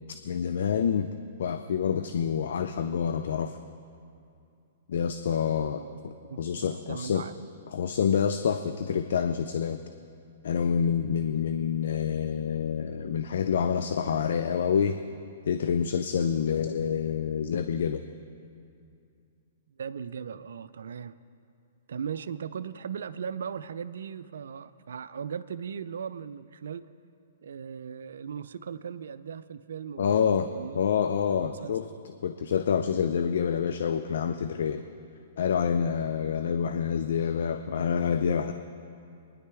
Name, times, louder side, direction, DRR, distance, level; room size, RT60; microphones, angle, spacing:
voice 1, 0.2-1.1 1.4-3.6 4.9-6.1 6.4-7.2 7.7-9.8 10.4-15.0 15.5-18.0 30.0-30.5 30.7-31.9 32.2-34.8 35.4-38.5, left 7 dB, 65° left, 8 dB, 0.5 m, -27 dB
voice 2, 5.8-7.3 19.8-21.2 21.9-26.9 27.4-30.8 31.2-31.8, right 7 dB, 70° right, 14 dB, 0.4 m, -38 dB
23.0 x 10.5 x 3.5 m, 2.5 s
hypercardioid pair, 120°, 0 cm